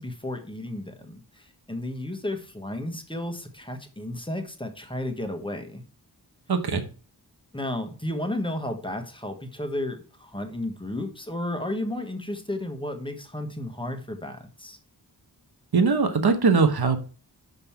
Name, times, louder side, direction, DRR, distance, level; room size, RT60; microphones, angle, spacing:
voice 1, 0.0-5.8 7.5-14.8, left 1 dB, 10° left, 5 dB, 1.3 m, -33 dB
voice 2, 6.5-6.8 15.7-17.0, right 4 dB, 70° right, 7 dB, 1.2 m, -21 dB
6.1 x 5.4 x 5.8 m, 0.37 s
wide cardioid pair, 80°, 40 cm